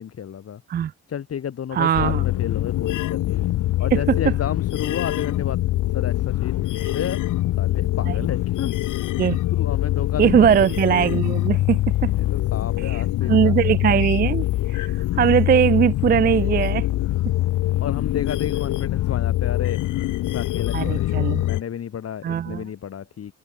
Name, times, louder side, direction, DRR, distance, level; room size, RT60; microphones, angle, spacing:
voice 1, 0.0-0.6 1.1-3.4 3.8-5.6 5.9-7.2 7.6-9.1 9.5-10.6 12.1-13.5 17.8-19.8 20.3-23.3, left 8 dB, 50° left, 2.3 m, -31 dB
voice 2, 1.7-2.2 3.9-4.3 6.8-6.9 8.0-8.3 9.2-9.4 10.2-12.1 12.8-13.0 13.3-16.9 20.7-21.4 22.2-22.7, right 9 dB, 30° right, 0.4 m, -20 dB
sound 1, 1.9-21.6, left 15 dB, 85° left, 1.7 m, -24 dB
cardioid pair, 90°, 30 cm